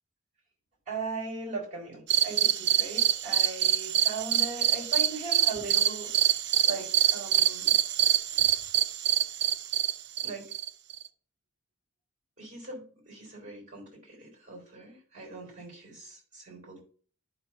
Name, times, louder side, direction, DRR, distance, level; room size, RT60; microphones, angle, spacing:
voice 1, 0.9-6.1 6.6-7.7 8.3-8.4 10.2-10.4 12.4-16.8, right 3 dB, 40° right, 0 dB, 4.0 m, -39 dB
sound 1, 2.1-11.1, right 10 dB, 55° right, 0.5 m, -25 dB
11.5 x 5.8 x 2.7 m, 0.43 s
head